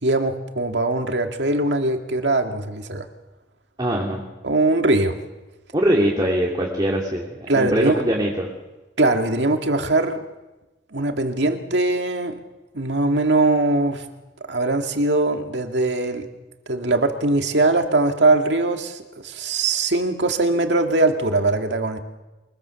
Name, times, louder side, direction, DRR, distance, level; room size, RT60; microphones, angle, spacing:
voice 1, 0.0-3.1 4.4-5.2 7.5-8.0 9.0-10.2 10.9-12.3 12.7-14.1 14.5-16.3 16.7-22.0, right 2 dB, 70° right, 5 dB, 2.1 m, -21 dB
voice 2, 3.8-4.2 5.7-8.5, right 1 dB, 25° right, -1 dB, 2.8 m, -22 dB
24.0 x 21.0 x 7.0 m, 1.1 s
head